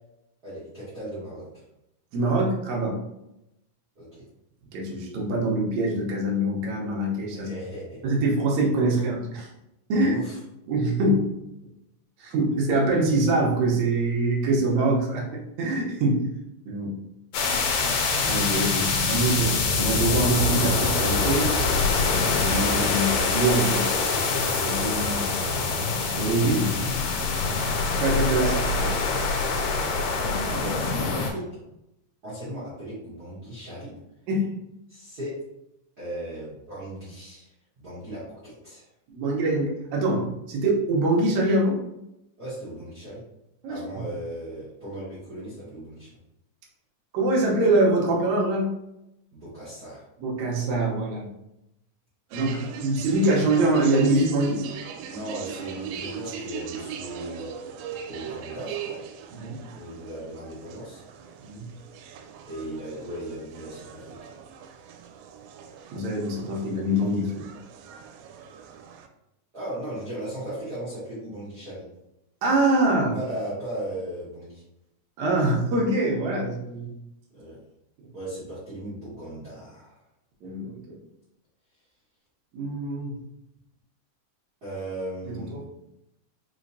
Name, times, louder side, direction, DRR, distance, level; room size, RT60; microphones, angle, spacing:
voice 1, 0.4-1.5 3.9-4.2 7.3-8.0 9.9-10.4 28.4-28.6 30.2-31.4 32.2-33.9 34.9-35.4 36.0-37.5 37.8-38.9 42.4-43.2 43.7-46.1 49.3-50.0 55.0-57.5 58.1-59.0 59.7-61.0 62.5-64.2 69.5-71.9 73.1-74.6 77.3-77.6 78.1-80.0 84.6-85.6, right 1 dB, 45° right, -10 dB, 1.2 m, -36 dB
voice 2, 2.1-3.0 4.7-7.5 8.0-9.5 9.9-10.2 10.7-11.3 12.2-16.3 16.7-17.0 18.2-21.5 22.4-23.9 24.6-25.4 26.2-26.7 28.0-28.9 34.3-34.5 39.1-41.8 43.6-43.8 47.1-48.7 50.2-51.3 52.3-54.6 59.3-59.6 61.4-61.7 65.9-67.4 72.4-73.2 75.2-76.9 80.4-81.0 82.5-83.2 85.3-85.6, right 2 dB, 70° right, -2 dB, 1.8 m, -24 dB
sound 1, 17.3-31.3, left 4 dB, 75° left, 2.4 m, -24 dB
sound 2, 52.3-69.1, right 7 dB, 85° right, 2.4 m, -40 dB
5.5 x 3.1 x 2.6 m, 0.86 s
omnidirectional pair, 4.1 m